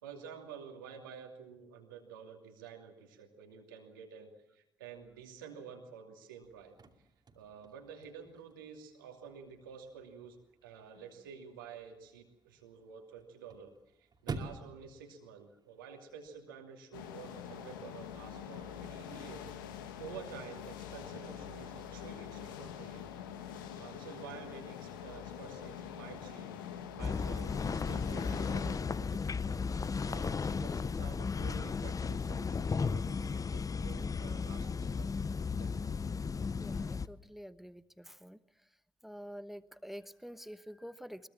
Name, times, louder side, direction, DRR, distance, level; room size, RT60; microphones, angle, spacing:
voice 1, 0.0-6.7 7.3-10.4 10.6-13.7 14.0-19.5 20.0-23.1 23.7-26.5 26.9-35.1 35.6-35.8, right 7 dB, 80° right, 3 dB, 2.7 m, -50 dB
Chirp tweet / Car / Slam, 6.4-16.4, right 4 dB, 40° right, 2.6 m, -50 dB
sound 1, 16.9-28.8, left 9 dB, 80° left, 1.3 m, -45 dB
sound 2, 27.0-37.1, left 5 dB, 30° left, 0.8 m, -35 dB
voice 2, 36.6-38.4 39.0-41.3, equal, ahead, 14 dB, 1.1 m, -47 dB
22.0 x 22.0 x 7.3 m, 0.83 s
figure-of-eight pair, 45°, 11 cm